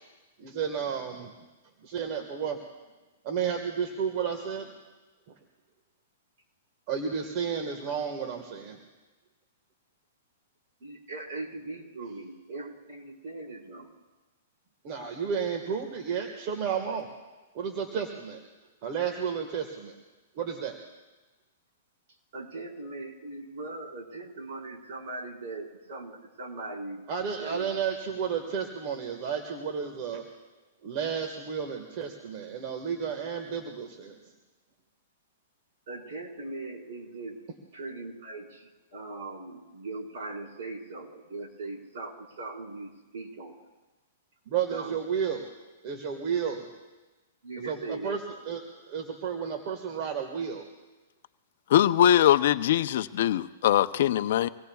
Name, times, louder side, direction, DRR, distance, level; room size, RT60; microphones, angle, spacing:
voice 1, 0.4-1.3 1.8-2.6 3.2-4.7 5.3-5.4 6.9-8.8 14.8-17.1 17.5-18.4 18.8-19.9 20.3-20.8 27.1-30.2 30.8-34.2 44.5-45.5 45.8-46.7 47.6-48.2 48.4-50.7, right 7 dB, 45° right, 4 dB, 1.6 m, -32 dB
voice 2, 10.8-13.9 22.3-27.0 27.4-27.7 35.9-37.4 37.7-43.6 44.7-45.0 47.4-48.2, right 3 dB, 60° right, -1 dB, 4.7 m, -40 dB
voice 3, 51.7-54.5, left 11 dB, 60° left, 13 dB, 0.5 m, -22 dB
25.0 x 18.5 x 2.4 m, 1.2 s
hypercardioid pair, 140°, 0 cm